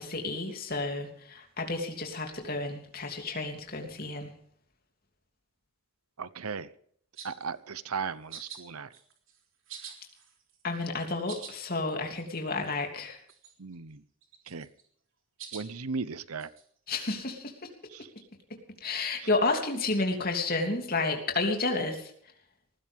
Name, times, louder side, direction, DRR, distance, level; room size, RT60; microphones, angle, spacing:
voice 1, 0.0-4.3 10.6-13.2 16.9-17.5 18.8-22.1, left 3 dB, 45° left, 3 dB, 3.1 m, -31 dB
voice 2, 6.2-6.7 7.2-8.9 13.6-14.0 14.5-14.7 15.5-16.5 17.9-18.1, right 5 dB, 90° right, 15 dB, 0.9 m, -36 dB
sound 1, 7.1-7.5 8.3-8.6 8.9-9.4 9.7-10.7 11.0-11.5 11.9-12.0 12.1-12.2 12.6-13.0 13.3-13.7 14.2-14.8 15.4-15.6 16.4-16.6, right 8 dB, 60° right, 3.7 m, -45 dB
19.0 x 16.0 x 3.6 m, 0.62 s
head